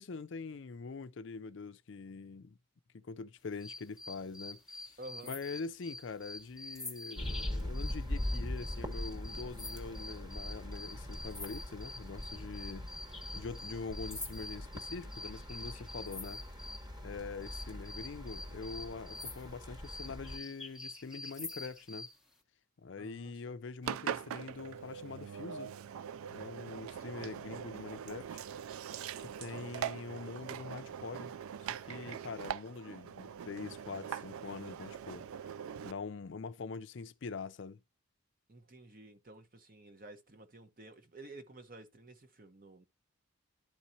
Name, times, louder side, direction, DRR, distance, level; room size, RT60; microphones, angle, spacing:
voice 1, 0.0-2.6 2.9-5.0 5.2-12.9 13.3-16.4 17.0-22.1 22.8-25.7 26.3-28.4 29.2-31.3 31.8-35.3 35.8-37.8, left 4 dB, 60° left, 0.5 m, -44 dB
sound 1, 3.6-16.9 17.4-22.2, left 2 dB, 5° right, 0.8 m, -47 dB
voice 2, 5.0-5.4 23.0-23.4 38.5-42.8, right 2 dB, 40° right, 1.0 m, -52 dB
sound 2, 7.2-20.4, left 1 dB, 20° right, 1.2 m, -42 dB
Engine, 23.8-35.9, right 8 dB, 85° right, 0.3 m, -42 dB
12.0 x 4.2 x 2.7 m
head